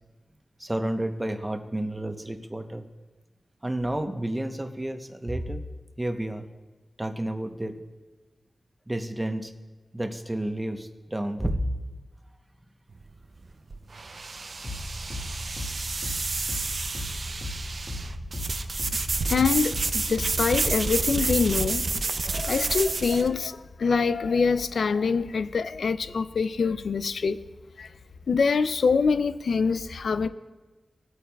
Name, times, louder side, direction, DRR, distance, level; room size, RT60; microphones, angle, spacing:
voice 1, 0.6-2.9 3.6-5.6 6.0-6.4 7.0-7.8 8.9-9.5 9.9-11.6, right 1 dB, 20° right, 0.8 m, -30 dB
sound 1, 12.9-23.3, right 3 dB, 60° right, 0.5 m, -30 dB
sound 2, 14.6-22.0, left 1 dB, 30° left, 1.8 m, -36 dB
voice 2, 19.3-27.4 27.8-27.9 28.3-30.3, left 5 dB, 85° left, 0.3 m, -25 dB
17.5 x 8.5 x 2.3 m
cardioid pair, 65°, 0 cm